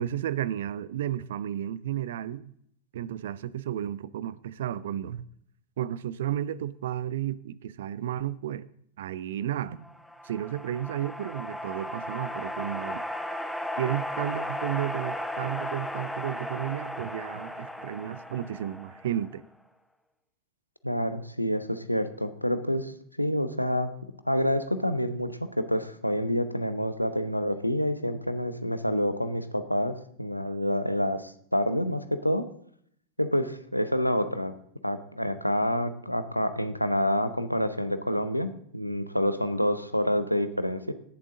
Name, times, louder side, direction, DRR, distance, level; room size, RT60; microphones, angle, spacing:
voice 1, 0.0-2.5 2.9-5.3 5.8-8.7 9.0-9.9 10.2-13.0 13.8-19.4, right 11 dB, 60° right, 0.5 m, -33 dB
sound 1, 9.8-19.4, left 1 dB, ahead, 1.0 m, -35 dB
voice 2, 20.8-22.9 23.2-23.9 24.3-32.5 33.2-34.5 34.8-40.9, equal, 90° left, 0.8 m, -28 dB
18.5 x 7.4 x 3.7 m
figure-of-eight pair, 90°, 0 cm